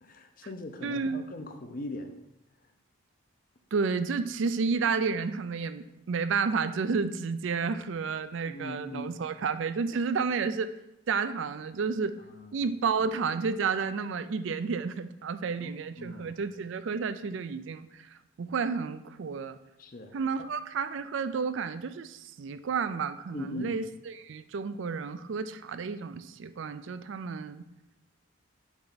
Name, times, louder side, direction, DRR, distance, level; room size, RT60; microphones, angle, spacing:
voice 1, 0.0-2.2 8.5-9.1 12.3-12.5 15.6-15.7 16.0-16.4 19.8-20.5 23.3-23.8, left 1 dB, 40° left, 7 dB, 0.6 m, -40 dB
voice 2, 0.8-1.3 3.7-10.7 11.1-12.2 12.5-19.6 20.1-27.7, right 5 dB, 65° right, 12 dB, 0.4 m, -31 dB
7.1 x 4.4 x 4.0 m, 0.85 s
head